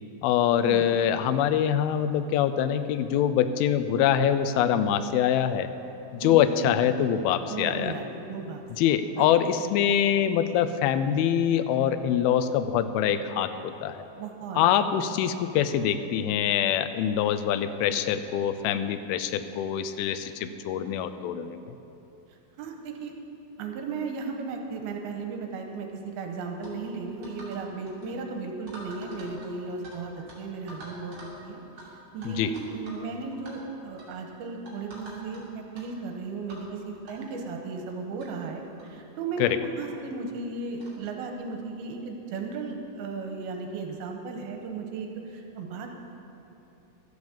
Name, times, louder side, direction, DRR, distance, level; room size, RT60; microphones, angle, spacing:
voice 1, 0.2-5.7 6.1-8.0 8.8-14.0 14.6-21.8 32.3-32.5 39.4-39.6, left 9 dB, 85° left, 10 dB, 2.4 m, -24 dB
voice 2, 7.5-8.6 9.2-9.3 14.2-14.6 22.6-23.1 23.6-31.6 32.1-45.9, right 4 dB, 80° right, 3 dB, 2.8 m, -35 dB
sound 1, 26.6-26.8 27.2-27.6 27.9-28.1 28.7-30.0 30.3-30.4 30.7-31.4 31.8-31.9 32.2-33.0 33.3-33.5 34.0-34.2 34.7-35.4 35.7-35.9 36.5-36.7 37.1-37.2 37.9-38.0 38.2-38.3 38.8-38.9 39.8-39.9 40.8-41.0, right 1 dB, 40° right, 2.8 m, -46 dB
12.0 x 8.0 x 7.1 m, 2.8 s
omnidirectional pair, 4.5 m